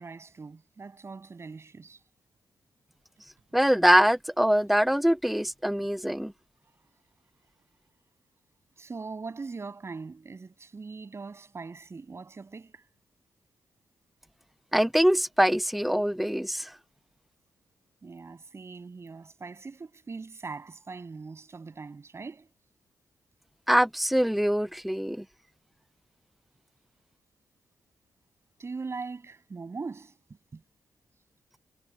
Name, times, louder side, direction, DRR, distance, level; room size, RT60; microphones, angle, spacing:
voice 1, 0.0-2.0 8.8-12.8 18.0-22.5 28.6-30.2 30.5-30.6, right 4 dB, 45° right, 8.0 m, -41 dB
voice 2, 3.5-6.3 14.7-16.7 23.7-25.2, equal, ahead, 0.6 m, -23 dB
supercardioid pair, 50°, 6 cm